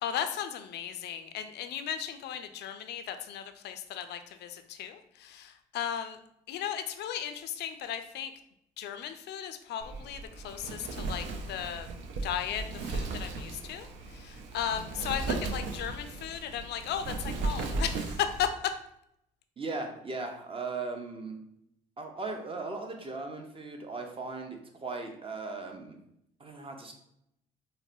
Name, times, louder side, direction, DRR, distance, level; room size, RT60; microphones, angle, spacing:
voice 1, 0.0-6.2 6.5-8.3 8.8-11.9 12.2-18.5, left 9 dB, 55° left, 9 dB, 0.4 m, -36 dB
Wind, 9.8-18.5, right 3 dB, 65° right, 0.5 m, -36 dB
voice 2, 19.6-21.4 22.0-26.0 26.4-26.9, right 3 dB, 25° right, 3 dB, 0.7 m, -38 dB
4.0 x 2.1 x 2.6 m, 0.76 s
hypercardioid pair, 50°, 21 cm